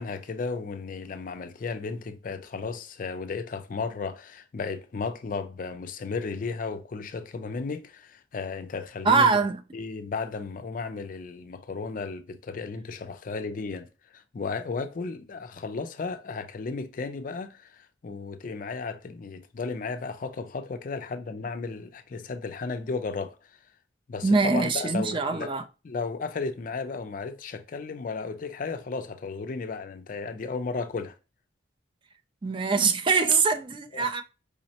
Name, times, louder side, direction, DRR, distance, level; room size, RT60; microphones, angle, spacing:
voice 1, 0.0-9.3 9.7-13.9 14.1-23.3 24.1-25.6 25.8-31.1 33.9-34.1, left 4 dB, 45° left, 0.4 m, -34 dB
voice 2, 9.0-9.6 24.2-25.6 32.4-34.2, right 4 dB, 25° right, 0.3 m, -23 dB
4.9 x 2.0 x 2.7 m
head